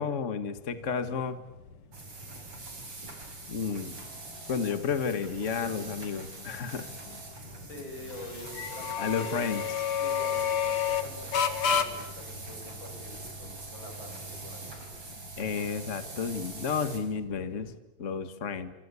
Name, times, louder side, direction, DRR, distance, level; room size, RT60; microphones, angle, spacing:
voice 1, 0.0-1.4 3.5-4.0 4.5-6.9 9.0-9.6 15.4-17.7 18.0-18.7, left 6 dB, 80° left, 10 dB, 0.6 m, -31 dB
sound 1, 0.6-17.8, left 7 dB, 45° left, 2.2 m, -35 dB
sound 2, 1.9-17.0, right 3 dB, 40° right, 6.7 m, -43 dB
voice 2, 7.7-9.6 10.0-15.0, left 1 dB, 30° left, 4 dB, 7.7 m, -46 dB
27.5 x 26.0 x 8.4 m, 0.97 s
omnidirectional pair, 4.1 m